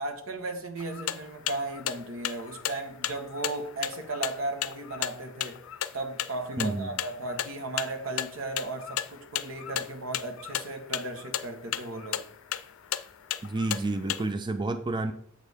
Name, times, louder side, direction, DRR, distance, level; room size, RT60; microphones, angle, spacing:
voice 1, 0.0-5.6 5.9-12.3, right 2 dB, 75° right, 6 dB, 1.2 m, -35 dB
sound 1, 0.8-14.3, left 11 dB, 85° left, 0.4 m, -34 dB
voice 2, 6.6-6.9 13.4-15.1, right 2 dB, 20° right, 9 dB, 0.4 m, -30 dB
7.9 x 6.4 x 3.5 m, 0.63 s
head